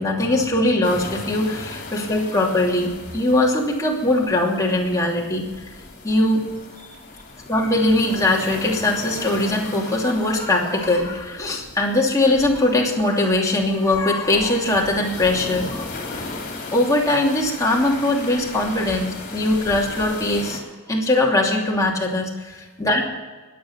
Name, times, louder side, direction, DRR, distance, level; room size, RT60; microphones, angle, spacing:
voice 1, 0.0-5.5 6.0-6.5 6.8-6.9 7.5-16.2 16.7-20.6 20.9-23.0, left 1 dB, 15° left, -2 dB, 2.8 m, -21 dB
Beach Tide, 0.8-20.6, left 3 dB, 40° left, 3.3 m, -37 dB
20.5 x 8.5 x 7.4 m, 1.3 s
head